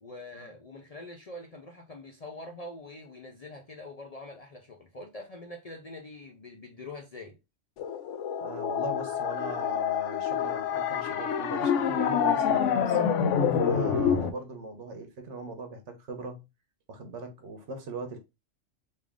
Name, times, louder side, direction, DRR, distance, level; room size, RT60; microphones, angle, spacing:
voice 1, 0.0-7.3, left 2 dB, 45° left, 0.5 m, -44 dB
sound 1, 7.8-14.3, left 7 dB, 80° left, 0.9 m, -27 dB
voice 2, 8.4-13.0 13.5-16.4 16.9-18.2, right 3 dB, 70° right, 1.2 m, -40 dB
3.4 x 2.7 x 3.6 m
omnidirectional pair, 1.3 m